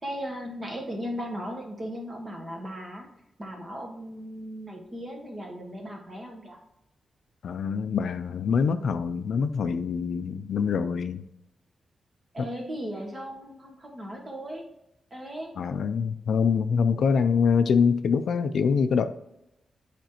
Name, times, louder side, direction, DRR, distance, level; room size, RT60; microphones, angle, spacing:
voice 1, 0.0-3.1 3.4-6.6 12.3-14.6 15.1-15.5, equal, 25° right, 0 dB, 1.5 m, -37 dB
voice 2, 7.4-11.2 12.4-12.5 15.6-19.1, left 6 dB, 75° left, 10 dB, 0.4 m, -24 dB
9.2 x 5.1 x 3.0 m, 0.85 s
wide cardioid pair, 140°, 0 cm